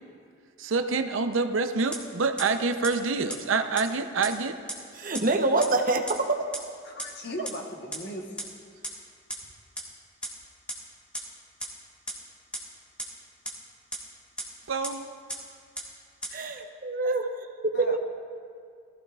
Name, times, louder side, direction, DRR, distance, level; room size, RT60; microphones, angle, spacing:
voice 1, 0.6-4.6 14.7-15.1, right 4 dB, 75° right, 8 dB, 0.6 m, -27 dB
sound 1, 1.9-2.0 2.4-2.5 2.8-2.9 3.3-3.4 3.8-3.9 4.2-4.3 4.7-4.8 5.1-5.2 5.6-5.7 6.1-6.2 6.5-6.6 7.0-7.1 7.4-7.5 7.9-8.0 8.4-8.5 8.8-8.9 9.3-9.4 9.8-9.9 10.2-10.3 10.7-10.8 11.1-11.2 11.6-11.7 12.1-12.2 12.5-12.6 13.0-13.1 13.5-13.6 13.9-14.0 14.4-14.5 14.8-14.9 15.3-15.4 15.8-15.9 16.2-16.3, right 1 dB, 5° left, 1.6 m, -33 dB
voice 2, 4.9-6.4 16.3-17.3 17.7-18.0, right 3 dB, 40° right, 4 dB, 0.8 m, -25 dB
voice 3, 6.8-8.4 17.7-18.0, equal, 50° left, 2 dB, 1.2 m, -37 dB
20.0 x 14.5 x 2.4 m, 2.2 s
head